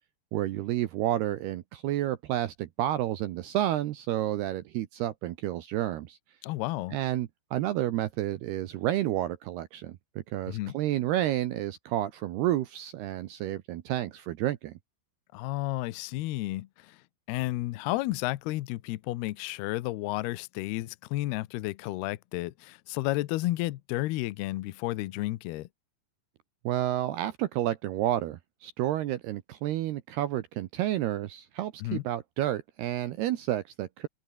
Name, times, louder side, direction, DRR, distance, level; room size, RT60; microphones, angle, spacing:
voice 1, 0.3-6.2 6.9-10.0 10.3-14.7 26.6-34.1, right 13 dB, 75° right, 2.6 m, -30 dB
voice 2, 6.4-7.0 10.5-10.8 15.3-17.0 17.3-25.7 31.8-32.0, left 18 dB, 80° left, 2.4 m, -32 dB
open air
omnidirectional pair, 5.7 m